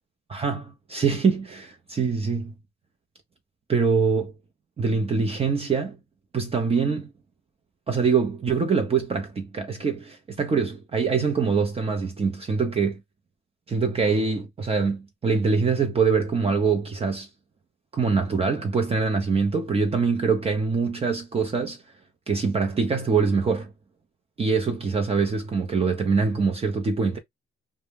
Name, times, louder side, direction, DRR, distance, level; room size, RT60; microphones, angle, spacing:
voice 1, 0.3-2.5 3.7-4.3 4.8-6.0 6.3-7.1 7.9-13.0 13.7-17.3 17.9-21.8 22.3-23.7 24.4-27.2, right 5 dB, 30° right, 0.6 m, -24 dB
2.1 x 2.1 x 3.2 m
cardioid pair, 90°, 20 cm